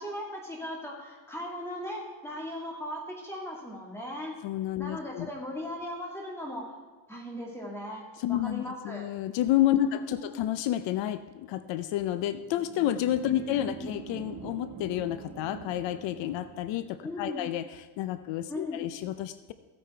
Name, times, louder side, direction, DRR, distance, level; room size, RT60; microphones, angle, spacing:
voice 1, 0.0-4.4 4.8-6.8 7.1-9.1 9.8-10.3 13.3-13.9 17.0-17.4 18.5-18.8, left 1 dB, 5° left, -2 dB, 2.3 m, -38 dB
voice 2, 4.4-5.3 8.2-17.7 18.0-19.5, left 12 dB, 75° left, 12 dB, 0.7 m, -30 dB
sound 1, 12.0-16.9, right 7 dB, 85° right, 1.4 m, -45 dB
15.5 x 8.6 x 4.4 m, 1.4 s
cardioid pair, 160°, 44 cm